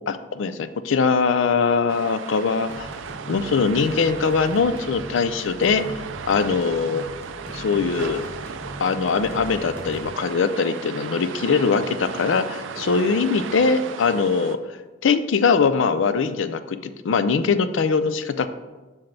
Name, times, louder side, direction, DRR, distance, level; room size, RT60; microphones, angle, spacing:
voice 1, 0.0-2.9 3.3-5.8 6.3-7.0 7.5-8.3 8.8-14.6 15.0-18.5, left 5 dB, 70° left, 12 dB, 0.4 m, -22 dB
sound 1, 1.9-14.6, right 6 dB, 70° right, 0.4 m, -36 dB
sound 2, 2.7-10.1, equal, 10° left, 0.7 m, -40 dB
7.7 x 5.8 x 3.3 m, 1.2 s
head